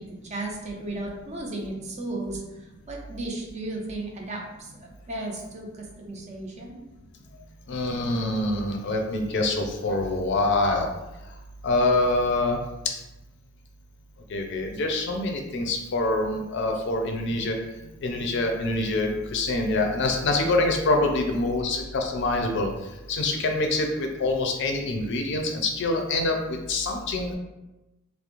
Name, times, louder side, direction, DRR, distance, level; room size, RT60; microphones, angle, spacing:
voice 1, 0.0-2.4 2.9-6.8, right 2 dB, 35° right, 0 dB, 0.4 m, -35 dB
voice 2, 7.7-10.9 11.6-12.6 14.3-17.6 18.0-22.7 23.1-26.4 26.7-27.4, left 2 dB, 60° left, 3 dB, 0.4 m, -25 dB
2.4 x 2.0 x 2.9 m, 1.0 s
head